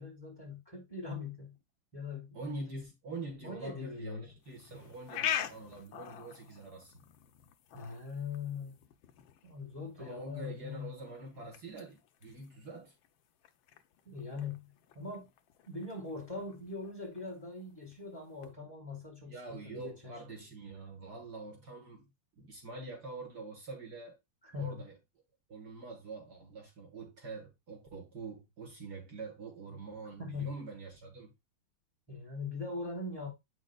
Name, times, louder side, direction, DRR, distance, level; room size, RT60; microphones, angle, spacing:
voice 1, 0.0-1.6 1.9-2.8 3.4-4.2 7.7-8.8 9.4-10.9 14.0-15.3 15.6-20.1 24.5-24.7 30.2-30.5 32.1-33.3, left 4 dB, 10° left, 3.2 m, -41 dB
voice 2, 2.3-6.9 10.0-12.9 19.2-22.1 22.4-24.2 24.6-24.9 25.5-31.3, right 3 dB, 55° right, 2.0 m, -45 dB
sound 1, 4.4-18.5, left 10 dB, 80° left, 1.5 m, -45 dB
8.3 x 6.5 x 2.3 m
omnidirectional pair, 2.2 m